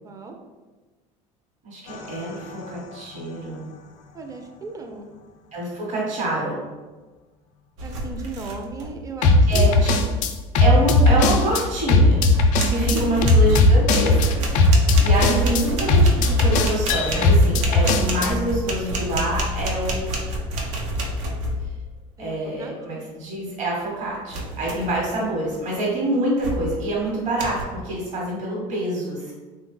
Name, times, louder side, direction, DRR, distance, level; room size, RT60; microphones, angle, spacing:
voice 1, 0.0-0.4 4.1-5.1 7.8-9.9 12.8-13.2 22.2-23.1, right 4 dB, 20° right, 4 dB, 0.4 m, -36 dB
voice 2, 1.6-3.7 5.5-6.6 9.5-10.0 10.6-12.3 12.7-20.0 22.2-29.3, right 1 dB, 50° right, -4 dB, 1.1 m, -26 dB
sound 1, 1.9-2.2 9.2-11.6 11.9-18.3, left 2 dB, 55° left, 0.4 m, -17 dB
sound 2, 7.8-9.0 9.3-9.8 11.7-11.8 12.3-21.8 24.3-25.0 25.5-25.8 26.4-26.9 27.4-27.6, right 1 dB, 90° right, 0.5 m, -28 dB
3.1 x 2.2 x 3.1 m, 1.2 s
supercardioid pair, 90°, 15 cm